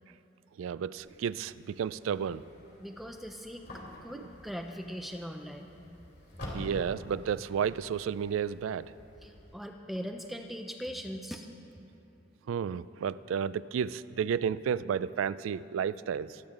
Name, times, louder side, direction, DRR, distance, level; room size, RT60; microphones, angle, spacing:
voice 1, 0.6-2.4 4.1-4.2 6.5-8.9 12.5-16.4, right 7 dB, 85° right, 17 dB, 0.3 m, -32 dB
sound 1, 1.0-9.5, left 1 dB, 60° left, 2.8 m, -48 dB
voice 2, 2.8-5.7 9.2-11.5, equal, ahead, 3 dB, 0.4 m, -40 dB
22.5 x 8.9 x 3.7 m, 2.9 s
head